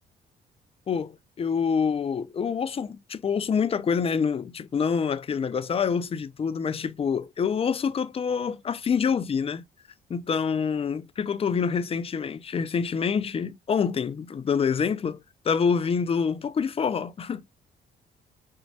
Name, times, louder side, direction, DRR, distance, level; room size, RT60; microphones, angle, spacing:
voice 1, 0.9-9.6 10.1-17.6, left 6 dB, 30° left, 0.4 m, -26 dB
4.3 x 2.1 x 2.6 m
cardioid pair, 90°, 20 cm